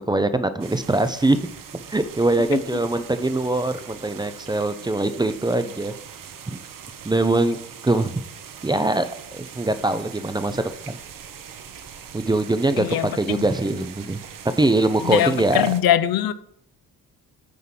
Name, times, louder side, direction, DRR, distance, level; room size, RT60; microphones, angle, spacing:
voice 1, 0.0-1.4 1.7-5.9 6.5-6.6 7.0-8.2 8.6-9.1 9.3-11.0 12.1-14.2 14.6-15.7, right 2 dB, 15° right, 0.4 m, -22 dB
sound 1, 0.6-15.8, right 8 dB, 65° right, 1.0 m, -41 dB
voice 2, 12.8-13.4 15.0-16.3, left 11 dB, 75° left, 0.6 m, -22 dB
9.5 x 3.6 x 5.8 m
cardioid pair, 120°, 35 cm